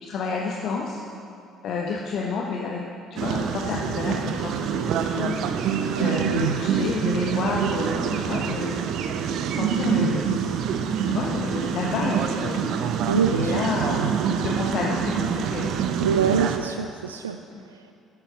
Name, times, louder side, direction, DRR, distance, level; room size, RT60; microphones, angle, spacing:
voice 1, 0.0-1.0 1.6-9.0 9.5-10.3 11.1-12.6 13.3-15.7 17.5-17.6, left 4 dB, 55° left, 0 dB, 1.1 m, -30 dB
sound 1, 3.2-16.6, right 7 dB, 60° right, 0.8 m, -26 dB
voice 2, 6.0-6.6 13.1-14.1 16.0-17.4 17.7-17.9, right 7 dB, 85° right, 7 dB, 0.3 m, -26 dB
11.5 x 11.0 x 6.3 m, 2.6 s
figure-of-eight pair, 50°, 0 cm